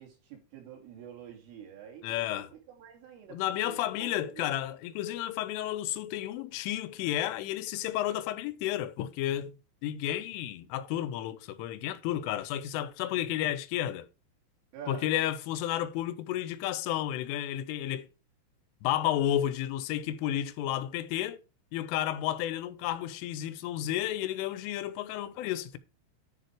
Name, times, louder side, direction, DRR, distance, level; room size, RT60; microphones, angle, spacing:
voice 1, 0.0-3.4 3.6-4.5 14.7-15.1 25.4-25.5, right 8 dB, 80° right, 5.3 m, -47 dB
voice 2, 2.0-2.5 3.3-9.5 9.8-14.1 14.9-18.1 18.8-21.4 21.7-25.8, left 12 dB, 85° left, 3.4 m, -32 dB
10.5 x 6.8 x 4.7 m
omnidirectional pair, 5.7 m